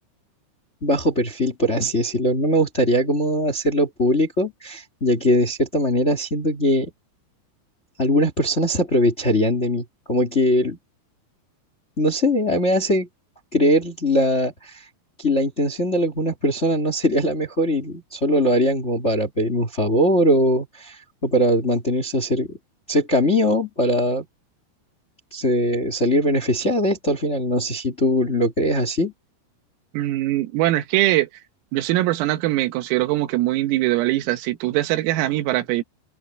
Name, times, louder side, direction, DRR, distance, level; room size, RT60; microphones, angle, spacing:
voice 1, 0.8-6.9 8.0-10.8 12.0-13.1 13.5-14.9 15.2-22.6 22.9-24.2 25.3-29.1, equal, 25° left, 1.6 m, -21 dB
voice 2, 29.9-31.3 31.7-35.8, right 16 dB, 85° right, 4.0 m, -22 dB
omnidirectional pair, 5.9 m